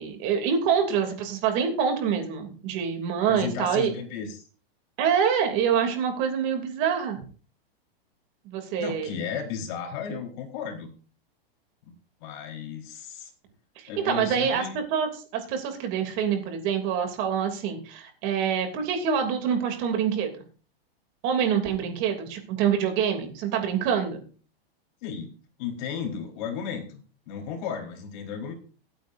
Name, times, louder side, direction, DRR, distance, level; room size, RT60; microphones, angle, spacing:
voice 1, 0.0-3.9 5.0-7.2 8.4-9.1 13.8-20.3 21.2-24.2, right 7 dB, 40° right, 5 dB, 3.0 m, -26 dB
voice 2, 3.3-4.5 8.8-10.9 11.8-11.9 12.2-13.3 13.9-14.8 25.0-25.3 25.6-28.5, left 7 dB, 50° left, 2 dB, 4.4 m, -34 dB
25.0 x 9.2 x 2.7 m, 0.38 s
supercardioid pair, 150°, 30 cm